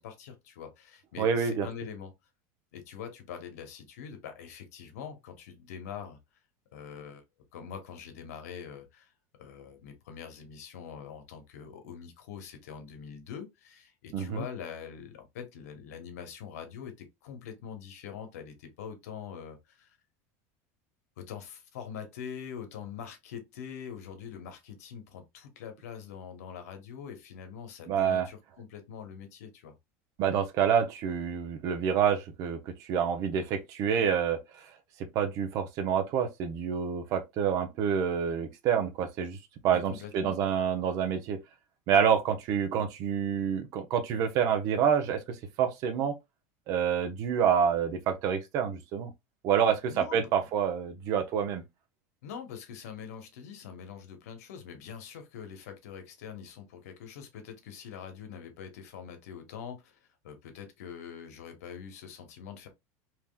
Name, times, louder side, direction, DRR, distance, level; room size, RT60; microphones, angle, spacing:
voice 1, 0.0-2.1 2.7-6.2 6.7-7.2 7.5-9.1 9.4-20.0 21.2-29.7 39.7-40.4 49.9-50.2 52.2-60.0 60.2-62.7, left 7 dB, 90° left, 1.0 m, -44 dB
voice 2, 1.2-1.7 14.1-14.4 27.9-28.3 30.2-34.4 35.0-39.4 39.6-41.4 41.9-46.2 46.7-49.1 49.4-51.6, right 8 dB, 45° right, 0.7 m, -27 dB
3.5 x 2.9 x 2.3 m
supercardioid pair, 150°, 8 cm